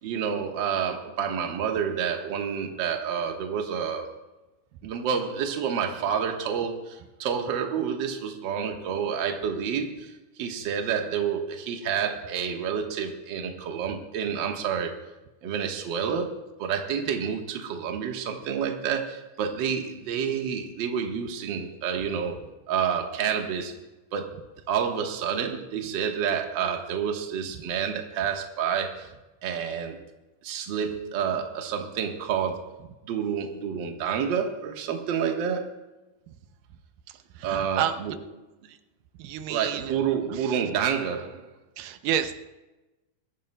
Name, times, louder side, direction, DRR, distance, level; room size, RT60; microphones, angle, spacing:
voice 1, 0.0-4.1 4.8-10.1 10.4-15.0 15.4-16.3 16.6-22.4 22.7-23.7 24.1-24.3 24.7-29.1 29.4-30.0 30.4-32.7 33.0-35.7 37.4-38.1 39.5-41.5, right 7 dB, 55° right, 3 dB, 1.3 m, -29 dB
voice 2, 37.1-38.2 38.6-38.8 39.2-40.0 40.3-40.6 41.8-42.4, right 10 dB, 85° right, 9 dB, 2.3 m, -31 dB
22.5 x 13.5 x 2.2 m, 1.1 s
omnidirectional pair, 3.8 m